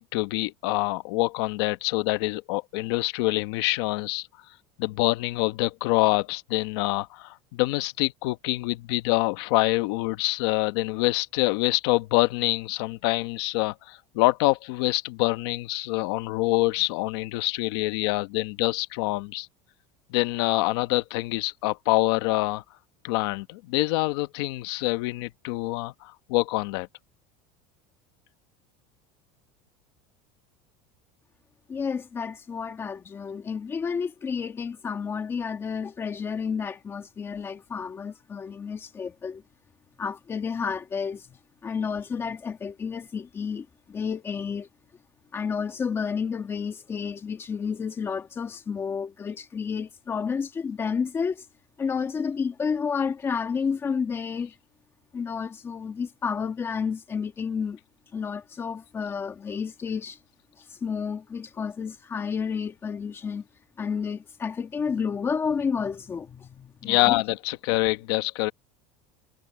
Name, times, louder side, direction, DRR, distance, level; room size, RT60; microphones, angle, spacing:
voice 1, 0.0-4.3 4.8-19.5 20.1-22.6 23.0-26.9 66.8-68.5, left 21 dB, 65° left, 1.1 m, -26 dB
voice 2, 31.7-39.4 40.0-44.7 45.3-51.4 51.8-54.5 55.1-57.8 58.1-60.2 60.6-63.5 63.8-67.2, left 6 dB, 15° left, 1.7 m, -31 dB
cardioid pair, 175°, 14 cm